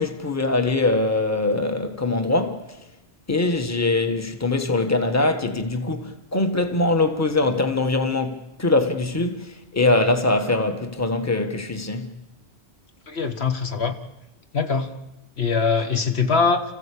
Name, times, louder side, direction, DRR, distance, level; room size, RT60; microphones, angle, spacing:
voice 1, 0.0-2.6 3.3-12.1, left 2 dB, 15° left, 1.5 m, -22 dB
voice 2, 13.1-13.9 14.5-14.9 15.4-16.6, left 5 dB, 70° left, 1.7 m, -22 dB
29.5 x 15.0 x 8.5 m
omnidirectional pair, 1.1 m